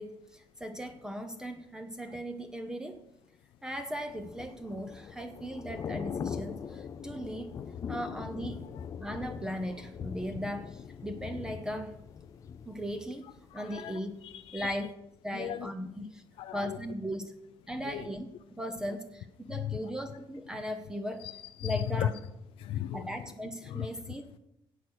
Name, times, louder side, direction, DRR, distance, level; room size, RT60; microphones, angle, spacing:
voice 1, 0.0-3.0 3.6-7.5 7.9-8.6 9.0-12.0 12.7-13.2 13.5-14.1 14.5-14.9 15.2-16.2 16.5-17.3 17.7-21.3 21.6-22.2 22.9-24.4, equal, 5° right, 6 dB, 0.8 m, -38 dB
Thunder / Rain, 3.9-13.9 14.2-14.5, left 7 dB, 35° left, 0.5 m, -41 dB
voice 2, 13.6-14.7 15.3-15.7 16.4-16.8 17.9-18.0 21.2-22.1 22.6-23.1 23.7-23.9, left 11 dB, 80° left, 10 dB, 0.5 m, -35 dB
17.0 x 6.1 x 6.4 m, 0.83 s
cardioid pair, 175°, 9 cm